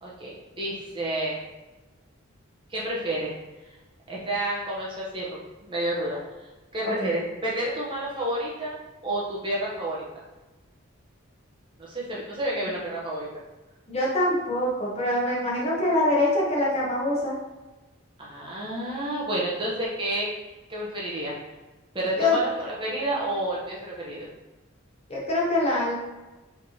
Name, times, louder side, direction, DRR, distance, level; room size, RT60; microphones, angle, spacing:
voice 1, 0.0-1.4 2.7-3.3 4.1-5.4 5.7-6.2 6.7-10.0 11.8-13.3 18.2-20.3 20.7-21.4 21.9-24.3, right 1 dB, 25° right, -5 dB, 0.9 m, -30 dB
voice 2, 13.9-17.3 22.2-22.4 25.1-25.9, left 2 dB, 30° left, -5 dB, 1.0 m, -24 dB
5.0 x 3.4 x 2.8 m, 1.1 s
head